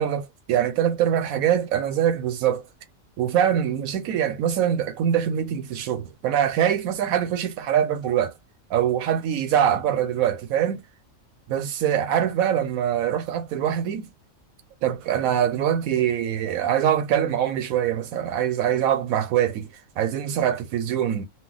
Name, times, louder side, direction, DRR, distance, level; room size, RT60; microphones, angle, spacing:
voice 1, 0.0-2.6 3.2-8.3 8.7-10.8 11.5-14.1 14.8-19.7 20.0-21.2, right 9 dB, 85° right, 1.1 m, -23 dB
2.3 x 2.1 x 3.8 m
omnidirectional pair, 1.5 m